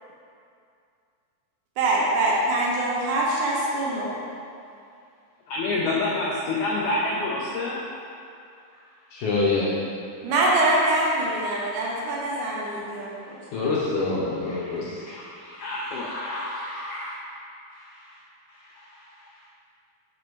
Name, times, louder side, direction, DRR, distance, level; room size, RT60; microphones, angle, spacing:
voice 1, 1.8-4.2 10.2-13.4, right 2 dB, 75° right, -4 dB, 2.1 m, -24 dB
voice 2, 5.5-7.8 14.5-17.1 17.7-18.1 18.9-19.0, left 2 dB, 90° left, -3 dB, 1.7 m, -29 dB
voice 3, 9.1-9.7 13.5-15.0, left 3 dB, 75° left, -7 dB, 1.9 m, -25 dB
7.5 x 5.3 x 3.1 m, 2.5 s
omnidirectional pair, 4.2 m